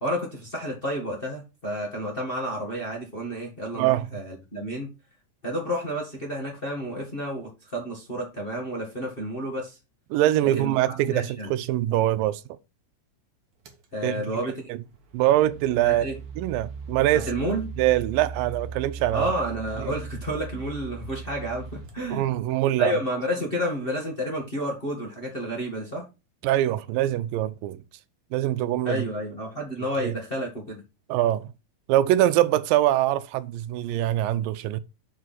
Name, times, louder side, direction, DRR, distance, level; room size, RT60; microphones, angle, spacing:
voice 1, 0.0-4.9 5.4-9.8 10.6-11.5 13.9-14.6 15.8-16.2 17.1-17.7 19.1-22.3 22.8-26.0 28.8-30.8, equal, 25° left, 1.4 m, -30 dB
voice 2, 3.8-4.1 10.1-12.4 14.0-14.4 15.1-16.1 16.4-17.3 17.8-19.3 19.8-19.9 22.1-23.0 26.4-27.8 28.3-29.0 30.0-30.1 31.1-31.5 31.9-34.8, right 14 dB, 90° right, 2.3 m, -23 dB
sound 1, 13.6-13.8 14.8-22.8, right 5 dB, 60° right, 1.5 m, -39 dB
6.3 x 4.7 x 5.9 m
omnidirectional pair, 3.9 m